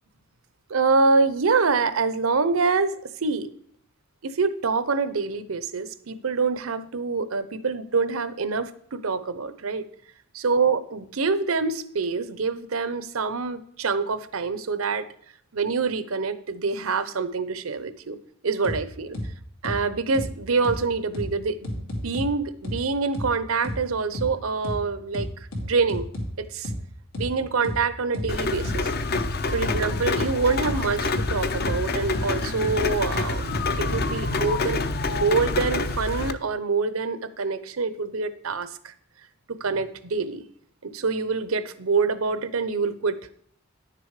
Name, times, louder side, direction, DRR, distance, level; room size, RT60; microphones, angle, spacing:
voice 1, 0.7-3.5 4.2-9.8 10.3-15.1 15.5-18.2 18.4-19.2 19.6-26.1 26.4-26.7 27.2-28.9 29.5-38.9 39.5-40.4 40.8-43.2, right 4 dB, 85° right, 14 dB, 0.7 m, -26 dB
sound 1, 18.6-18.8 19.1-19.3 19.6-19.8 20.1-20.3 20.6-20.8 21.1-21.3 21.6-22.3 22.6-22.8 23.1-23.3 23.6-23.8 24.1-24.3 24.6-24.8 25.1-26.3 26.6-26.8 27.1-27.3 27.6-27.8 28.1-28.3 28.6-28.8 29.1-29.3 29.6-30.3 30.6-30.8 31.1-31.3 31.6-31.8 32.1-32.3 32.6-32.8 33.1-34.0, left 1 dB, 85° left, 2.6 m, -31 dB
Rain, 28.3-36.3, left 3 dB, 50° left, 0.6 m, -27 dB
10.0 x 6.9 x 4.8 m, 0.62 s
head